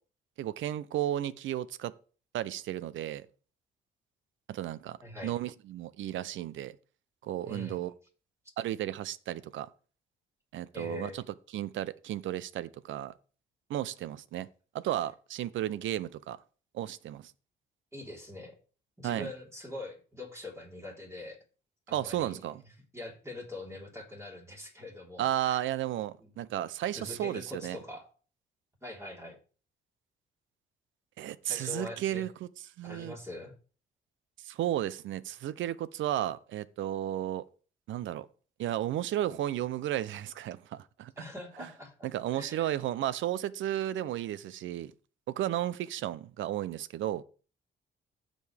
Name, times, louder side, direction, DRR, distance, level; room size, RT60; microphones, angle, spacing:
voice 1, 0.4-1.9 2.3-3.3 4.5-5.0 5.2-6.7 7.2-7.9 8.6-9.7 10.5-11.2 11.5-13.1 13.7-14.5 14.7-16.4 16.7-17.3 19.0-19.3 21.9-22.6 25.2-27.8 31.2-32.5 32.8-33.2 34.4-37.4 37.9-38.3 38.6-41.1 41.6-41.7 42.0-44.9 45.3-47.2, right 12 dB, 75° right, 0.6 m, -33 dB
voice 2, 5.0-5.3 7.4-7.8 10.7-11.2 17.9-18.6 19.0-21.4 21.9-22.5 22.9-25.6 26.2-26.3 26.9-28.1 28.8-29.4 31.4-32.2 32.9-33.5 41.2-42.1 42.3-42.8, left 2 dB, 15° right, 3.8 m, -43 dB
15.5 x 5.2 x 3.4 m
cardioid pair, 90°, 20 cm